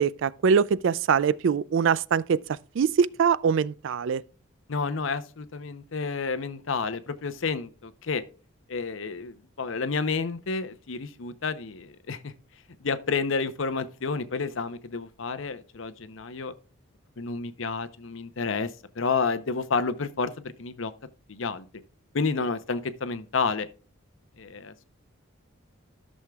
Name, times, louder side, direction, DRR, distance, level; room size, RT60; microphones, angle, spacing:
voice 1, 0.0-2.4 2.8-4.2, right 6 dB, 65° right, 0.3 m, -23 dB
voice 2, 4.7-8.2 8.7-12.3 12.8-16.5 17.2-18.7 19.0-20.9 21.3-21.7 22.1-23.7 24.4-24.9, left 4 dB, 70° left, 0.7 m, -30 dB
13.5 x 6.3 x 2.3 m
head